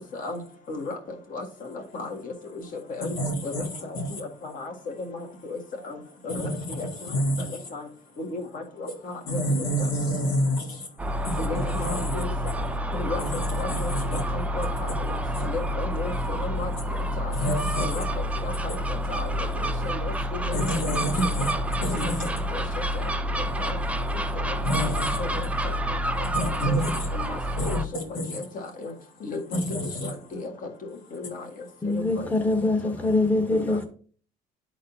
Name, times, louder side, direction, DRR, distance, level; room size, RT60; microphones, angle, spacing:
voice 1, 1.9-2.6 2.9-3.2 3.4-3.5 4.2-4.7 5.1-5.6 5.8-6.0 6.2-6.5 6.7-6.9 7.7-7.8 8.2-9.4 11.4-12.3 12.9-13.2 13.6-13.9 14.3-15.1 15.4-16.7 17.2-17.3 17.8-18.0 18.4-18.8 19.1-20.1 20.4-20.6 21.9-22.1 22.5-22.6 23.6-23.8 25.2-25.7 26.4-26.8 27.1-27.8 28.5-28.9 29.2-29.6 30.0-30.5 31.1-31.4 31.8-32.3 33.5-33.8, left 3 dB, 55° left, 1.8 m, -34 dB
voice 2, 3.1-3.7 3.9-4.2 6.3-7.6 9.3-10.9 11.2-12.2 13.2-13.3 13.7-14.2 15.3-15.5 17.3-18.0 20.5-21.5 21.8-22.3 24.6-25.2 26.3-27.1 27.6-28.4 29.5-30.1, equal, 90° left, 2.2 m, -28 dB
Gull seagull, 11.0-27.9, equal, 10° right, 0.5 m, -28 dB
voice 3, 31.8-33.8, left 2 dB, 10° left, 0.9 m, -24 dB
12.0 x 4.1 x 2.7 m
cardioid pair, 110°, 17 cm